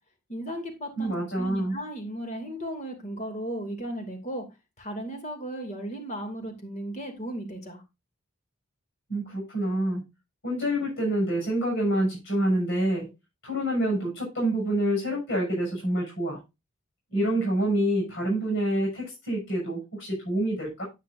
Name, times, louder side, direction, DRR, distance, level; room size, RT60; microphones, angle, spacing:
voice 1, 0.3-4.4 4.8-7.8, right 1 dB, 35° left, 5 dB, 2.6 m, -35 dB
voice 2, 1.0-1.7 9.1-10.0 10.4-13.1 13.4-16.4 17.1-20.8, right 1 dB, 60° left, -2 dB, 6.3 m, -27 dB
9.5 x 9.4 x 2.6 m, 0.24 s
head